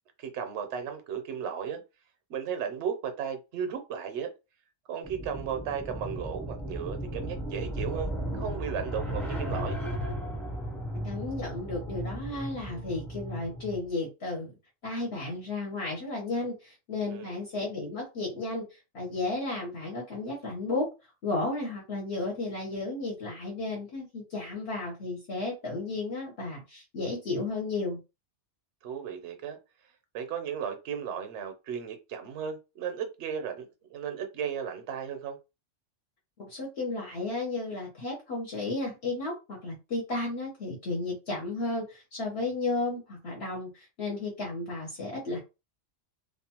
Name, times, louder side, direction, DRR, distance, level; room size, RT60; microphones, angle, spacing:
voice 1, 0.2-1.8 2.3-4.3 4.9-9.8 17.1-17.4 28.8-29.6 30.1-35.4, right 7 dB, 70° right, 0.9 m, -35 dB
sound 1, 5.0-13.8, equal, ahead, 0.5 m, -35 dB
voice 2, 10.9-14.5 14.8-20.9 21.2-28.0 36.4-45.4, left 2 dB, 60° left, 1.1 m, -33 dB
2.5 x 2.2 x 2.8 m
omnidirectional pair, 1.2 m